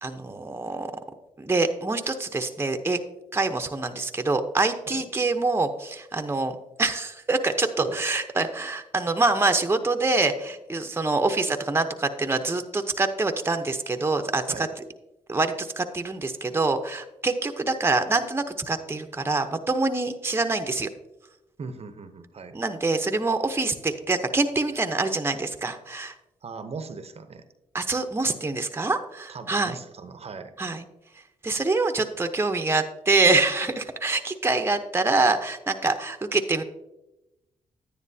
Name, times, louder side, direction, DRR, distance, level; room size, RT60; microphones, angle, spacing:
voice 1, 0.0-0.9 1.4-3.0 3.3-14.7 15.3-20.9 22.5-26.1 27.7-29.8 30.6-30.8 31.4-36.6, right 3 dB, 20° right, 7 dB, 0.8 m, -25 dB
voice 2, 21.6-22.6 26.4-27.4 29.3-30.5, right 4 dB, 50° right, 10 dB, 0.8 m, -38 dB
10.0 x 9.7 x 2.7 m, 0.95 s
cardioid pair, 65°, 13 cm